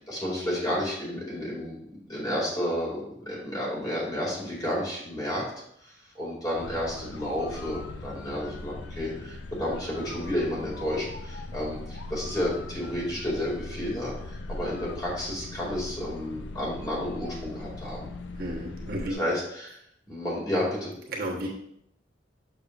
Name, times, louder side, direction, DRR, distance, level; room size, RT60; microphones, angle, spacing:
voice 1, 0.1-5.4 5.8-18.1 19.1-19.8 20.1-20.9, left 1 dB, 20° left, -5 dB, 2.2 m, -31 dB
sound 1, 6.6-19.1, left 2 dB, 80° left, 0.5 m, -40 dB
voice 2, 18.4-19.2 21.1-21.5, right 1 dB, 50° right, -4 dB, 1.2 m, -32 dB
6.8 x 6.4 x 2.5 m, 0.73 s
head